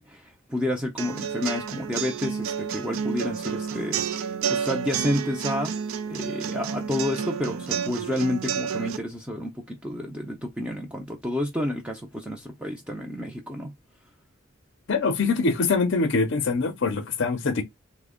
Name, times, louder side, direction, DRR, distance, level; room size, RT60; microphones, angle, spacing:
voice 1, 0.0-5.8 6.1-13.7, left 1 dB, 5° right, 0.4 m, -30 dB
sound 1, 1.0-9.0, right 7 dB, 75° right, 0.4 m, -30 dB
voice 2, 14.9-17.6, left 4 dB, 55° left, 0.5 m, -24 dB
3.3 x 2.1 x 3.6 m
head